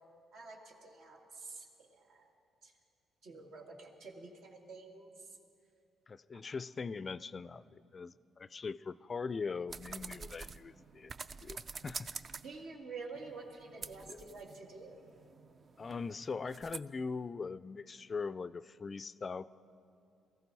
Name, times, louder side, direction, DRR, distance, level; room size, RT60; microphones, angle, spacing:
voice 1, 0.3-2.3 2.6-2.7 3.2-5.4 6.3-6.4 12.4-15.0, right 3 dB, 80° right, 0 dB, 2.2 m, -49 dB
voice 2, 6.1-11.1 11.4-12.1 14.1-14.2 15.8-19.5, left 4 dB, 35° left, 16 dB, 0.3 m, -41 dB
sound 1, 9.7-12.6 13.1-16.8, right 5 dB, 45° right, 0.5 m, -48 dB
22.0 x 14.5 x 4.1 m, 2.6 s
cardioid pair, 90°, 0 cm